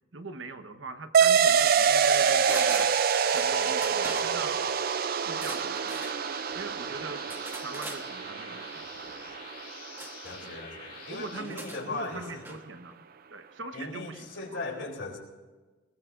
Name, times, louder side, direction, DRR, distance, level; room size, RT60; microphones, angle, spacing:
voice 1, 0.1-2.9 3.2-4.6 5.2-6.0 6.5-7.3 7.6-9.1 10.4-10.6 11.1-11.6 11.9-13.0 13.3-14.3 14.5-14.6, right 3 dB, 85° right, 8 dB, 1.2 m, -42 dB
sound 1, 1.1-10.2, right 7 dB, 50° right, 0.4 m, -26 dB
sound 2, 1.8-11.4, left 6 dB, 50° left, 2.7 m, -47 dB
sound 3, 2.5-3.5 3.8-4.3 5.3-6.2 7.3-8.0 10.0-10.4 11.4-12.6 12.9-13.0, right 2 dB, 10° right, 1.2 m, -41 dB
voice 2, 10.2-12.5 13.7-15.2, left 3 dB, 70° left, 1 dB, 3.4 m, -38 dB
21.0 x 20.0 x 2.6 m, 1.3 s
head